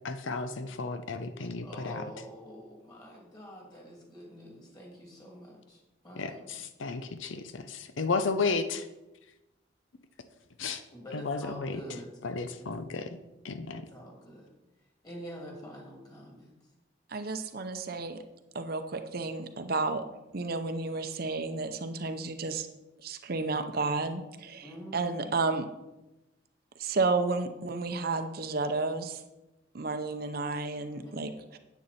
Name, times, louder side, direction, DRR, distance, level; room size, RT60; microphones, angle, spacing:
voice 1, 0.0-2.1 6.2-8.9 10.6-10.8 11.1-13.2 13.4-13.9, left 4 dB, 85° left, 10 dB, 0.6 m, -33 dB
voice 2, 1.6-5.5 6.0-6.4 10.9-12.1 12.6-12.7 13.7-14.5 15.0-16.4 24.6-25.3 30.9-31.1, equal, 20° left, -2 dB, 2.8 m, -46 dB
voice 3, 17.1-18.2 18.5-20.0 20.3-22.7 23.0-25.7 26.8-29.2 29.7-31.6, right 3 dB, 50° right, 7 dB, 0.7 m, -32 dB
9.6 x 8.2 x 4.2 m, 1.0 s
head